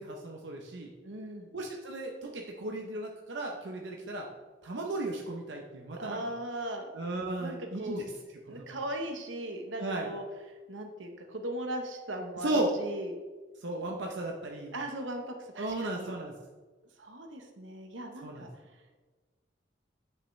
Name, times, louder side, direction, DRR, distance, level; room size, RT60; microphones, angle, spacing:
voice 1, 0.0-0.9 1.5-4.2 4.6-6.3 6.9-8.0 8.5-8.6 9.8-10.1 12.4-12.7 13.6-14.7 15.6-16.3 18.2-18.5, right 2 dB, 65° right, 0 dB, 0.8 m, -35 dB
voice 2, 1.0-1.5 6.0-6.8 7.4-8.1 8.5-10.2 10.7-12.5 12.8-13.1 14.7-16.1 17.0-18.5, right 1 dB, 85° right, 4 dB, 1.1 m, -38 dB
8.6 x 6.6 x 3.2 m, 1.3 s
head